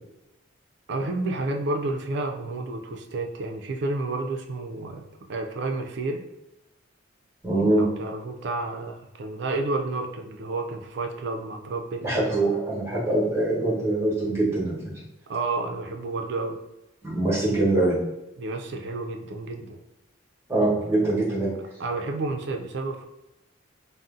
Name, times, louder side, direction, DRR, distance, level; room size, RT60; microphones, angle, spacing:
voice 1, 0.9-6.3 7.7-12.0 15.3-16.6 18.4-19.8 21.8-23.0, right 2 dB, 60° right, 4 dB, 0.4 m, -30 dB
voice 2, 7.4-7.8 12.0-14.8 17.0-18.0 20.5-21.5, right 2 dB, 15° right, -7 dB, 1.0 m, -23 dB
2.6 x 2.0 x 3.6 m, 0.93 s
head